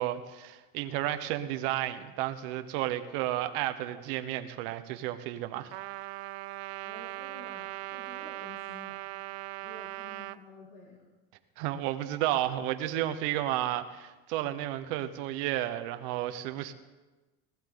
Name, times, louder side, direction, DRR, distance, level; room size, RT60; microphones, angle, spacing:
voice 1, 0.0-5.7 11.6-16.7, right 13 dB, 60° right, 9 dB, 1.1 m, -32 dB
Trumpet, 5.7-10.4, right 18 dB, 85° right, 0.5 m, -40 dB
voice 2, 6.8-9.0 9.6-11.0, left 1 dB, 35° left, -3 dB, 2.6 m, -51 dB
19.0 x 13.5 x 3.9 m, 1.2 s
cardioid pair, 165°, 31 cm